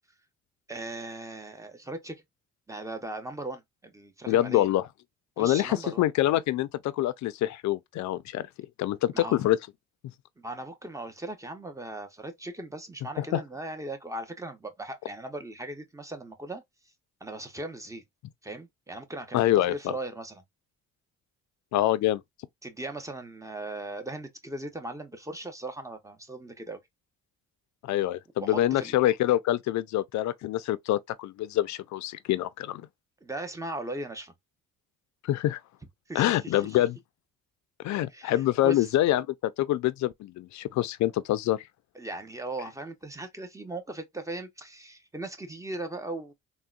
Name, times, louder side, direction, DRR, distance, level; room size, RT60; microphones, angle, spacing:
voice 1, 0.7-2.2 2.7-4.7 5.4-6.0 9.1-9.5 10.4-16.6 17.2-18.0 18.4-20.4 22.6-26.8 28.4-28.9 33.2-34.3 36.1-36.8 38.1-38.9 41.9-46.3, right 2 dB, 10° right, 0.7 m, -38 dB
voice 2, 4.3-4.9 5.4-8.5 8.8-9.6 13.2-13.4 19.3-19.9 21.7-22.2 27.8-32.8 35.2-35.6 36.1-37.0 37.8-41.6, left 14 dB, 70° left, 0.4 m, -26 dB
3.6 x 2.1 x 2.4 m
cardioid pair, 90°, 30 cm